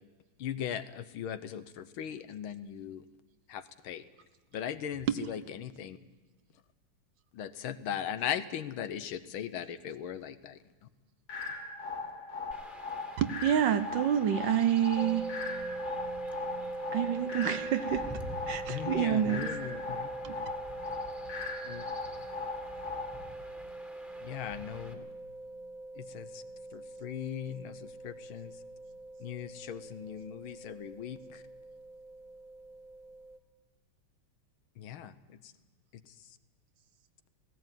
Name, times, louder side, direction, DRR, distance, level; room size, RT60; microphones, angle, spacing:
voice 1, 0.4-3.0 3.5-4.0 4.5-6.0 7.3-10.6 18.7-20.1 21.6-21.8 24.2-25.0 26.0-26.4 26.7-28.5 29.2-31.4 34.8-35.4 36.1-36.2, left 9 dB, 75° left, 13 dB, 1.7 m, -39 dB
sound 1, 11.3-23.3, left 4 dB, 45° left, 2.9 m, -39 dB
Chirp tweet / Wind / Stream, 12.5-24.9, equal, ahead, 2.0 m, -50 dB
voice 2, 13.2-15.3 16.9-18.2 18.5-19.5 20.2-20.4, right 10 dB, 65° right, 12 dB, 1.4 m, -28 dB
sound 2, 15.0-33.4, right 2 dB, 40° right, 2.0 m, -42 dB
17.5 x 17.0 x 9.0 m, 1.3 s
omnidirectional pair, 2.4 m